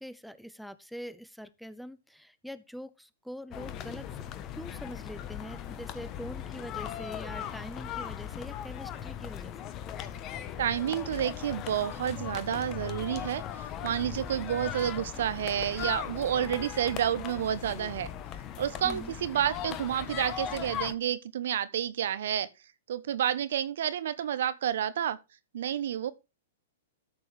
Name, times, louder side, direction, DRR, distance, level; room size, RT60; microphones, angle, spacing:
voice 1, 0.0-4.2 4.5-9.7 18.8-19.1, equal, ahead, 0.7 m, -44 dB
sound 1, 3.5-20.9, left 10 dB, 35° left, 1.2 m, -38 dB
voice 2, 10.6-13.4 13.8-18.1 18.6-22.5 22.9-25.2 25.5-26.1, right 10 dB, 65° right, 1.0 m, -30 dB
13.0 x 7.0 x 3.5 m
hypercardioid pair, 115°, 0 cm